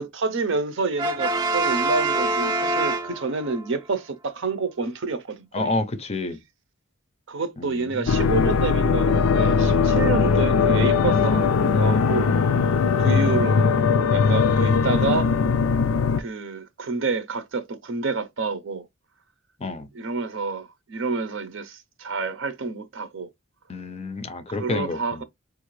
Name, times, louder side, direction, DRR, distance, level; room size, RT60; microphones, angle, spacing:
voice 1, 0.0-5.8 7.3-12.3 13.0-15.3 16.2-18.9 19.9-23.3 24.5-25.2, right 3 dB, 60° right, 0.6 m, -28 dB
Brass instrument, 1.0-3.6, right 2 dB, 20° right, 0.5 m, -25 dB
voice 2, 5.5-6.4 7.6-7.8 12.8-14.1 19.6-19.9 23.7-25.2, left 2 dB, 30° left, 0.5 m, -30 dB
sound 1, 8.1-16.2, left 5 dB, 85° left, 0.4 m, -20 dB
4.6 x 2.5 x 3.1 m
head